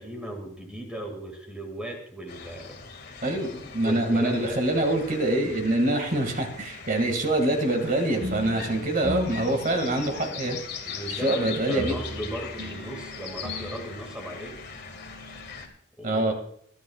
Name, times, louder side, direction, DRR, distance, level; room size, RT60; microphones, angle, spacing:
voice 1, 0.0-2.7 3.8-4.6 10.9-14.5 16.0-16.3, right 1 dB, 5° right, 2 dB, 2.1 m, -37 dB
sound 1, 2.3-15.7, left 6 dB, 55° left, 2.1 m, -41 dB
voice 2, 3.2-10.6 11.2-11.9 16.0-16.3, right 1 dB, 45° right, 4 dB, 2.1 m, -25 dB
sound 2, 8.2-15.7, left 1 dB, 65° right, 2.1 m, -39 dB
23.5 x 10.5 x 2.4 m, 0.67 s
head